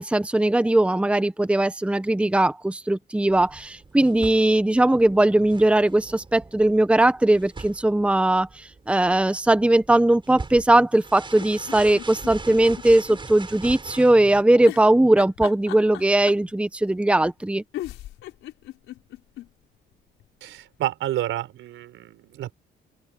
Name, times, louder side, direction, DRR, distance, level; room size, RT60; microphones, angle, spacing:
voice 1, 0.0-17.6, right 1 dB, 5° right, 1.0 m, -19 dB
sound 1, 3.3-14.4, right 3 dB, 25° right, 4.6 m, -41 dB
sound 2, 11.3-13.2 13.5-13.6 14.6-16.5 17.4-17.5 17.7-19.5 19.9-20.0 20.2-20.3, left 14 dB, 90° left, 5.0 m, -37 dB
voice 2, 20.4-22.5, right 13 dB, 85° right, 4.7 m, -30 dB
open air
cardioid pair, 90°, 20 cm